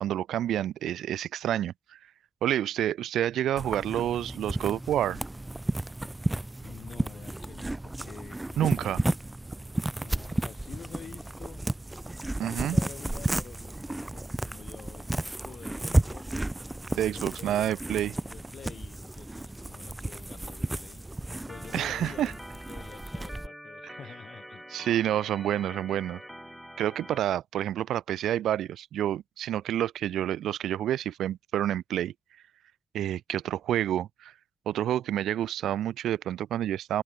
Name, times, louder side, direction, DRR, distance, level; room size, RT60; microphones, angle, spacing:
voice 1, 0.0-1.7 2.4-5.2 8.6-9.0 12.4-12.8 16.9-18.1 21.7-22.3 24.7-26.2 26.8-32.1 32.9-34.3 34.7-37.0, right 11 dB, 80° right, 0.4 m, -28 dB
sound 1, 3.6-23.5, right 1 dB, 15° right, 1.1 m, -33 dB
voice 2, 6.6-8.9 9.9-11.7 12.4-16.4 16.8-17.8 18.2-21.0 21.5-22.4 22.7-24.7, left 7 dB, 60° left, 3.6 m, -48 dB
Organ, 21.5-27.2, equal, ahead, 6.9 m, -46 dB
hypercardioid pair, 45°, 0 cm